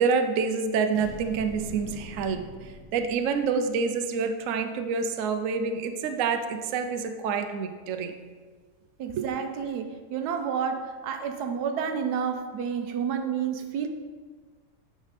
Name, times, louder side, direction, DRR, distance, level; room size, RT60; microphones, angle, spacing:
voice 1, 0.0-8.1 9.1-9.3, right 5 dB, 65° right, 7 dB, 0.9 m, -27 dB
sound 1, 0.9-3.7, equal, 15° left, 1.1 m, -43 dB
voice 2, 9.0-13.9, right 7 dB, 80° right, 7 dB, 1.2 m, -30 dB
9.3 x 5.2 x 4.1 m, 1.5 s
omnidirectional pair, 1.7 m